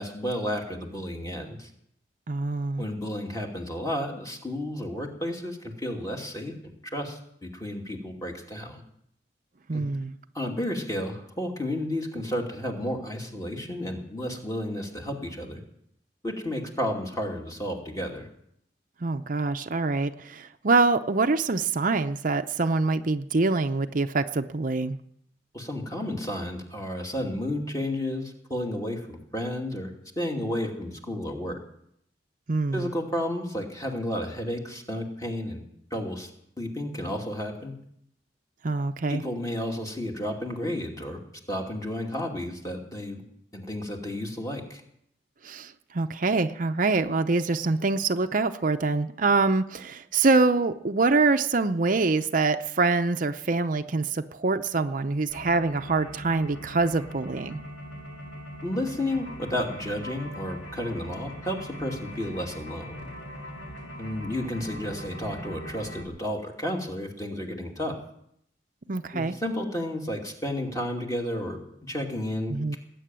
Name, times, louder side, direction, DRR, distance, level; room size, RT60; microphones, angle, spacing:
voice 1, 0.0-1.7 2.8-6.5 6.9-8.8 9.7-9.8 10.3-15.6 16.2-18.3 25.5-31.6 32.7-35.6 35.9-36.3 36.6-37.7 39.1-41.2 41.5-43.2 43.5-44.8 58.6-63.1 64.0-67.9 69.1-72.8, left 1 dB, 20° left, 1 dB, 2.6 m, -32 dB
voice 2, 2.3-2.9 9.7-10.1 19.0-25.0 32.5-32.9 38.6-39.2 45.4-57.6 68.9-69.4 72.5-72.8, right 3 dB, 50° right, 8 dB, 0.6 m, -25 dB
sound 1, 55.3-66.0, equal, 90° left, 3.5 m, -40 dB
19.5 x 9.4 x 7.6 m, 0.72 s
head